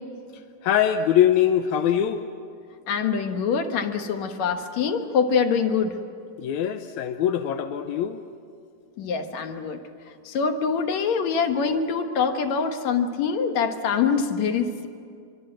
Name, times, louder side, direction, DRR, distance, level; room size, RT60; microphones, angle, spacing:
voice 1, 0.6-2.2 6.4-8.2, left 10 dB, 75° left, 7 dB, 1.8 m, -22 dB
voice 2, 2.9-6.0 9.0-9.8 10.3-14.9, left 6 dB, 60° left, 6 dB, 2.3 m, -24 dB
25.5 x 24.0 x 7.7 m, 2.3 s
omnidirectional pair, 4.1 m